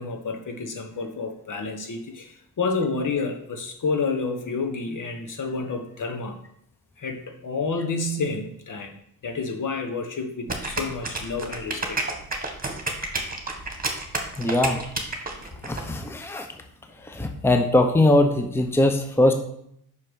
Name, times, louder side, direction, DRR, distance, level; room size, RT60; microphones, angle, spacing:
voice 1, 0.0-6.4 7.0-8.9 9.2-12.0 15.9-16.0, left 4 dB, 55° left, 4 dB, 1.4 m, -29 dB
sound 1, 10.5-15.8, right 2 dB, 25° right, 1.7 m, -30 dB
voice 2, 14.4-14.8 15.6-16.5 17.0-19.3, left 1 dB, 5° left, 5 dB, 0.8 m, -21 dB
5.7 x 4.8 x 6.3 m, 0.70 s
cardioid pair, 70°, 38 cm